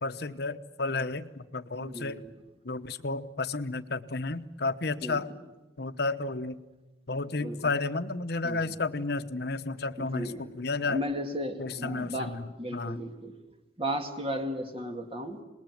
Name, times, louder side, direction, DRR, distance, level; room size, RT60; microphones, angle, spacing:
voice 1, 0.0-2.2 2.6-5.3 5.8-6.6 7.1-11.0 11.6-13.0, left 3 dB, 65° left, 11 dB, 1.1 m, -32 dB
voice 2, 1.8-2.3 5.0-5.2 7.4-7.6 8.4-8.8 10.0-10.5 10.8-13.4 13.8-15.4, equal, 30° right, 5 dB, 2.3 m, -35 dB
27.0 x 20.5 x 9.3 m, 1.1 s
head